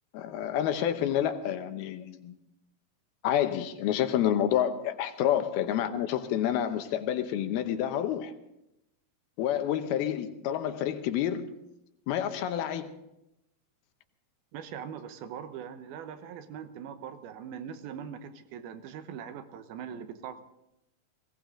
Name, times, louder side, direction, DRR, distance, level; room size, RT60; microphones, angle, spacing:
voice 1, 0.1-2.3 3.2-8.3 9.4-11.5 12.1-13.0, left 10 dB, 85° left, 2.9 m, -29 dB
voice 2, 14.5-20.4, right 8 dB, 85° right, 2.9 m, -41 dB
20.5 x 17.0 x 3.8 m
omnidirectional pair, 4.4 m